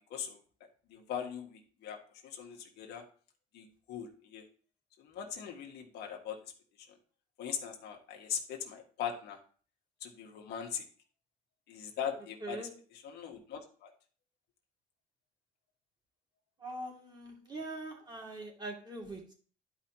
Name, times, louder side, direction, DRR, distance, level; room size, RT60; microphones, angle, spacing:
voice 1, 0.9-2.0 2.2-3.0 3.5-4.4 5.0-6.4 7.4-9.4 10.0-10.8 11.7-12.7 13.0-13.9, left 8 dB, 75° left, 2 dB, 1.6 m, -40 dB
voice 2, 16.6-19.3, right 2 dB, 25° right, -1 dB, 2.5 m, -42 dB
11.0 x 5.0 x 2.9 m, 0.42 s
cardioid pair, 110°, 17 cm